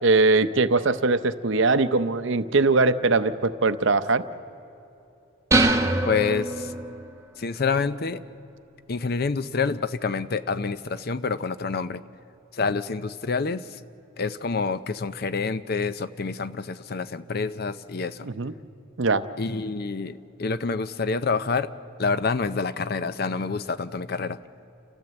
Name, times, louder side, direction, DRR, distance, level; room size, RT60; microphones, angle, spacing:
voice 1, 0.0-4.2 18.3-18.5 19.0-19.3, right 3 dB, 60° right, 12 dB, 0.7 m, -21 dB
sound 1, 5.5-7.1, right 2 dB, 15° right, 0.8 m, -23 dB
voice 2, 6.1-6.7 7.4-8.2 8.9-12.0 12.5-13.8 14.2-18.3 19.4-21.7 22.0-24.4, left 4 dB, 45° left, 14 dB, 0.5 m, -27 dB
29.5 x 14.0 x 8.0 m, 2.8 s
head